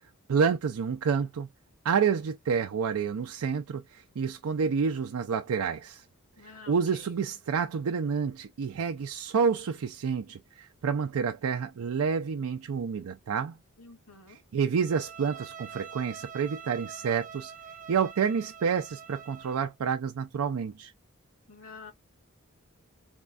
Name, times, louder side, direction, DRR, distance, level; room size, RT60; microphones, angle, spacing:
voice 1, 0.3-1.5 1.8-6.0 6.7-13.6 14.3-17.5 17.9-20.9, right 6 dB, 80° right, 0.4 m, -29 dB
voice 2, 6.4-7.1 13.8-14.4 21.5-21.9, left 4 dB, 85° left, 2.4 m, -49 dB
Bowed string instrument, 14.8-19.7, right 7 dB, 40° right, 0.9 m, -45 dB
4.2 x 2.2 x 2.4 m
head